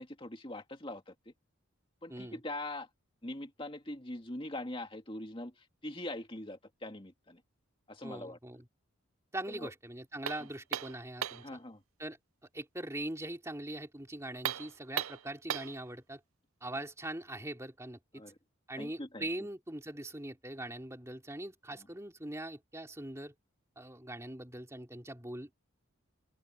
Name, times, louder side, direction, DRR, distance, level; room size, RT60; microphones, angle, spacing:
voice 1, 0.0-1.3 2.0-2.9 3.2-7.4 7.9-8.4 9.5-9.7 11.4-11.8 18.1-18.4 18.8-19.3 21.7-21.9, left 1 dB, 25° left, 2.4 m, -42 dB
voice 2, 8.0-8.6 9.3-11.4 12.0-12.2 12.5-16.2 16.6-18.2 18.7-23.3 23.8-25.5, right 1 dB, 15° right, 2.9 m, -42 dB
sound 1, 10.3-11.5 14.3-15.8, right 10 dB, 75° right, 0.6 m, -37 dB
open air
head